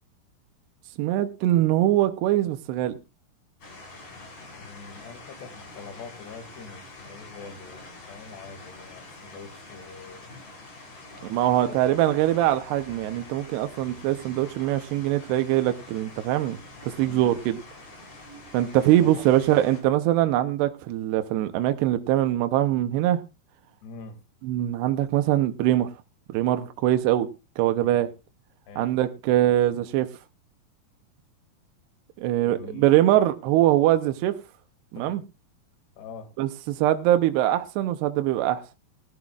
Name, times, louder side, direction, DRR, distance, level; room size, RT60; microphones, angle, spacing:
voice 1, 1.0-3.0 11.2-16.6 16.8-17.6 18.5-23.2 24.4-25.9 26.3-27.3 27.6-28.1 28.8-30.1 32.2-34.4 34.9-35.2 36.4-38.6, right 13 dB, 80° right, 2.9 m, -23 dB
sound 1, 3.6-19.8, left 2 dB, 40° left, 5.7 m, -46 dB
voice 2, 4.6-10.3 10.6-10.7 11.6-11.8 17.0-17.4 19.0-19.3 23.8-24.2 27.7-28.1 28.7-28.9 32.4-32.9 34.9-35.2 36.0-36.3, left 5 dB, 80° left, 4.3 m, -44 dB
18.5 x 13.5 x 2.4 m
omnidirectional pair, 4.8 m